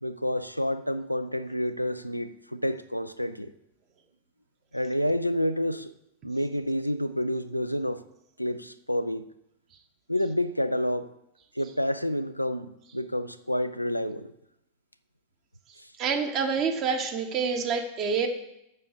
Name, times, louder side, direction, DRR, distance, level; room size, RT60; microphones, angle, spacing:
voice 1, 0.0-3.5 4.7-5.9 6.2-8.0 8.4-9.3 10.1-11.1 11.5-14.3 15.8-15.9, equal, 90° left, 0.4 m, -29 dB
voice 2, 16.0-18.3, right 5 dB, 35° right, 1.4 m, -27 dB
7.4 x 6.3 x 6.9 m
figure-of-eight pair, 90°, 0 cm